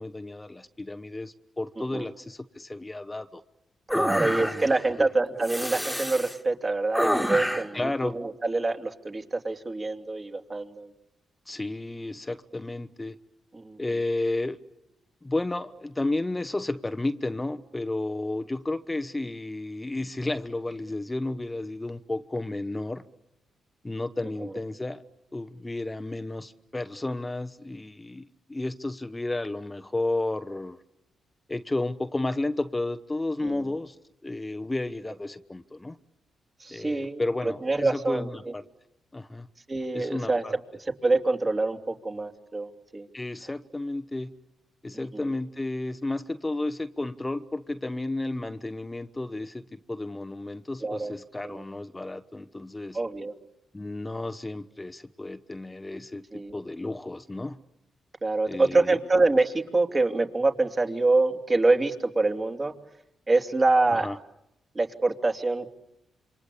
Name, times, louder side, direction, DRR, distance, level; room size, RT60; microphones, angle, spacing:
voice 1, 0.0-3.4 3.9-4.6 5.0-5.1 7.7-8.1 11.5-13.2 13.8-14.6 15.2-23.0 23.8-25.0 25.3-30.8 31.5-34.0 34.2-36.0 36.7-38.6 39.1-39.5 39.9-40.6 43.1-44.3 44.8-53.0 53.7-57.6 58.5-59.0 63.9-64.2, left 2 dB, 20° left, 11 dB, 1.0 m, -32 dB
sound 1, 3.9-4.8 5.4-6.4 6.9-7.8, equal, ahead, 2.0 m, -28 dB
voice 2, 3.9-10.9 13.5-13.8 24.4-24.5 33.4-33.6 36.6-38.3 39.7-40.4 41.0-43.1 44.9-45.1 50.8-51.1 51.4-51.6 52.9-53.3 56.3-56.6 58.2-62.7 63.3-64.1 64.7-65.7, right 3 dB, 30° right, 5 dB, 3.0 m, -25 dB
28.0 x 25.0 x 8.5 m, 0.86 s
cardioid pair, 70°, 0 cm